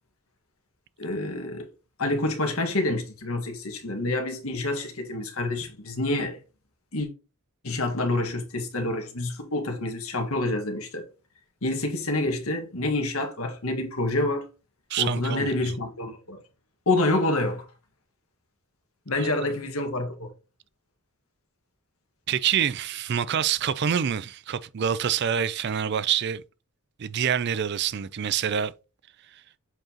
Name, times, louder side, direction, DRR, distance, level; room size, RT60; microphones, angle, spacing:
voice 1, 1.0-1.7 2.0-6.4 6.9-7.1 7.6-11.1 11.6-14.5 15.0-16.4 16.9-17.6 19.1-20.3, left 2 dB, 75° left, 1.7 m, -27 dB
voice 2, 14.9-15.7 19.2-19.3 22.3-26.4 27.0-28.7, right 8 dB, 50° right, 0.4 m, -26 dB
7.7 x 4.6 x 2.9 m
head